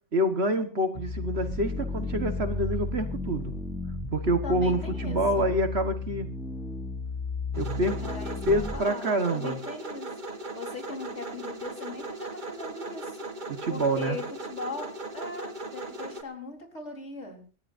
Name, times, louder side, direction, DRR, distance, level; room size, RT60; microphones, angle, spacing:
voice 1, 0.1-3.5 4.1-6.3 7.6-8.0 8.5-9.6 13.5-14.2, right 1 dB, 55° right, 7 dB, 1.7 m, -27 dB
sound 1, 1.0-8.8, left 3 dB, ahead, 1.5 m, -33 dB
voice 2, 4.4-5.5 8.0-10.2 10.5-13.2 13.7-14.9 15.1-17.4, left 3 dB, 60° left, 2 dB, 4.6 m, -39 dB
sound 2, 7.5-16.2, right 2 dB, 40° right, 1.5 m, -38 dB
29.0 x 14.0 x 2.7 m, 0.36 s
omnidirectional pair, 1.3 m